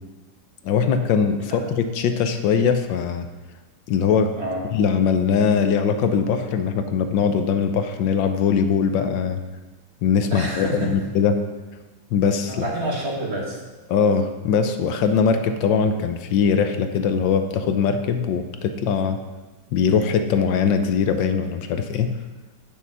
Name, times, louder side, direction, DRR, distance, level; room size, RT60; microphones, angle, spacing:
voice 1, 0.6-3.3 3.9-4.3 4.7-9.4 10.0-11.4 12.1-12.6 13.9-19.2 19.7-22.1, left 6 dB, 75° left, 8 dB, 1.4 m, -21 dB
voice 2, 4.4-4.7 10.3-10.9 12.5-13.6, right 1 dB, 35° right, -2 dB, 1.9 m, -28 dB
8.4 x 7.1 x 6.0 m, 1.2 s
omnidirectional pair, 2.1 m